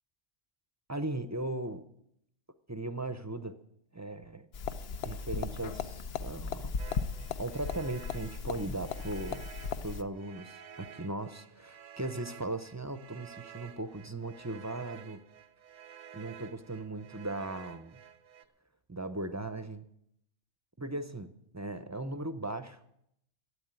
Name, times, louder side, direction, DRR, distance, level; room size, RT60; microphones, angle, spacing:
voice 1, 0.9-1.8 2.7-3.6 3.9-4.5 5.0-6.7 7.4-9.5 9.8-15.2 16.1-18.0 18.9-19.9 20.8-22.8, right 2 dB, 20° right, 11 dB, 0.5 m, -38 dB
sound 1, 4.5-10.0, left 5 dB, 60° left, 0.9 m, -37 dB
sound 2, 6.8-18.4, right 9 dB, 85° right, 1.2 m, -52 dB
13.0 x 8.5 x 8.9 m, 0.76 s
omnidirectional pair, 1.3 m